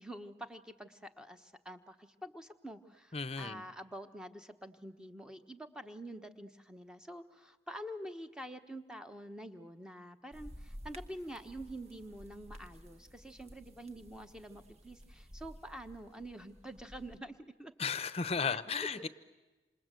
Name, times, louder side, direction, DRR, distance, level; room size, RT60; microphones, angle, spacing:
voice 1, 0.0-17.7 18.5-18.9, right 1 dB, 5° right, 8 dB, 1.2 m, -47 dB
voice 2, 3.1-3.6 17.8-19.1, left 5 dB, 30° left, 14 dB, 0.8 m, -35 dB
sound 1, 10.3-17.2, equal, 35° right, 1.8 m, -53 dB
28.0 x 27.5 x 7.7 m, 1.2 s
head